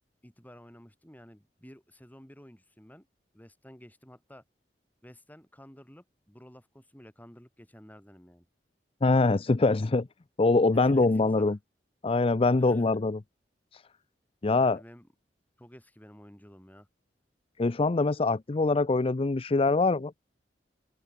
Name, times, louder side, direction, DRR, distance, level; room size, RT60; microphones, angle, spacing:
voice 1, 0.2-3.1 3.3-4.4 5.0-8.5 10.7-11.5 12.5-13.0 14.5-15.1 15.6-16.9, equal, 10° left, 6.2 m, -51 dB
voice 2, 9.0-10.1 10.4-11.6 12.0-13.2 14.4-14.8 17.6-20.1, left 3 dB, 35° left, 0.5 m, -24 dB
open air
head